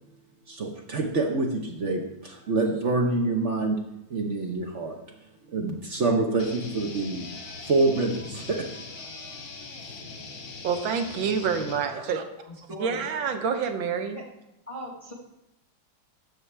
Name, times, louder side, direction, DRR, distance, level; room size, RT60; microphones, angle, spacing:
voice 1, 0.5-3.8 4.1-5.0 5.5-9.3, right 3 dB, 50° right, 1 dB, 0.9 m, -27 dB
sound 1, 6.4-11.8, left 4 dB, 80° left, 2.2 m, -41 dB
voice 2, 10.6-12.2 12.8-14.2, right 6 dB, 80° right, 7 dB, 1.6 m, -27 dB
voice 3, 11.7-12.0 12.7-13.0 14.7-15.1, right 1 dB, 25° left, -2 dB, 0.8 m, -39 dB
12.0 x 6.8 x 3.3 m, 0.91 s
omnidirectional pair, 2.1 m